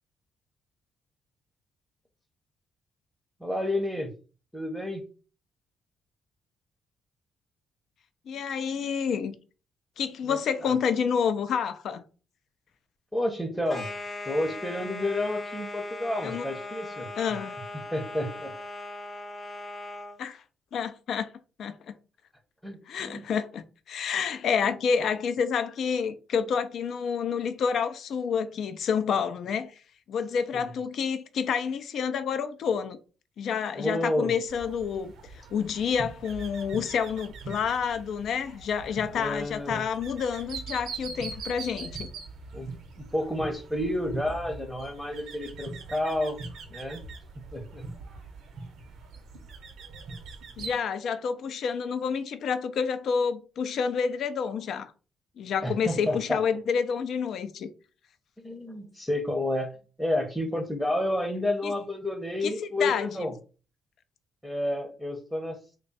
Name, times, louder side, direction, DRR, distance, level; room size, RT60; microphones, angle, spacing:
voice 1, 3.4-4.1 4.5-5.0 10.3-10.7 13.1-13.9 14.3-17.1 17.9-18.5 22.6-23.2 30.5-30.6 33.7-34.3 39.2-39.9 42.5-46.4 46.7-47.0 47.4-47.8 55.6-56.4 58.4-63.3 64.4-65.6, left 1 dB, 5° left, 0.7 m, -30 dB
voice 2, 8.3-9.4 10.0-12.0 16.2-16.5 17.2-17.5 20.2-20.4 20.7-21.3 21.6-21.9 22.9-29.7 30.1-33.0 33.4-42.1 50.6-54.9 55.4-57.7 61.6-61.7 62.4-62.5 62.8-63.3, left 6 dB, 70° left, 0.4 m, -29 dB
sound 1, 13.7-20.2, left 2 dB, 35° left, 0.8 m, -39 dB
sound 2, 34.5-50.7, right 3 dB, 75° right, 0.7 m, -42 dB
3.2 x 2.3 x 4.0 m
cardioid pair, 90°, 0 cm